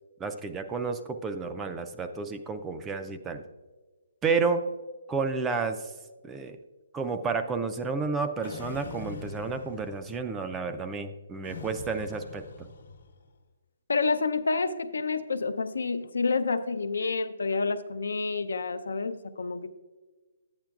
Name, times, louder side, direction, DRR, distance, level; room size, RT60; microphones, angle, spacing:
voice 1, 0.2-3.4 4.2-4.6 5.1-5.9 6.2-6.6 6.9-12.4, right 4 dB, 10° right, 8 dB, 0.3 m, -31 dB
sound 1, 8.4-10.3 11.4-13.3, left 4 dB, 60° left, 0.9 m, -43 dB
voice 2, 13.9-19.7, left 4 dB, 85° left, 10 dB, 0.5 m, -29 dB
11.5 x 8.8 x 2.3 m, 1.2 s
hypercardioid pair, 170°, 0 cm